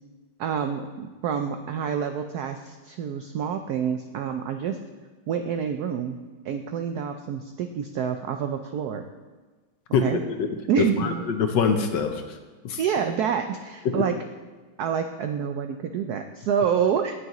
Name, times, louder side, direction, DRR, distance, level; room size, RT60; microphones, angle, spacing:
voice 1, 0.4-4.8 5.3-6.2 6.4-9.1 10.0-10.2 10.7-11.2 12.8-14.1 14.8-17.1, right 7 dB, 85° right, 7 dB, 0.8 m, -27 dB
voice 2, 10.8-12.4 12.6-12.8 13.8-14.0, left 6 dB, 70° left, 6 dB, 1.3 m, -24 dB
18.5 x 6.5 x 3.0 m, 1.3 s
omnidirectional pair, 2.3 m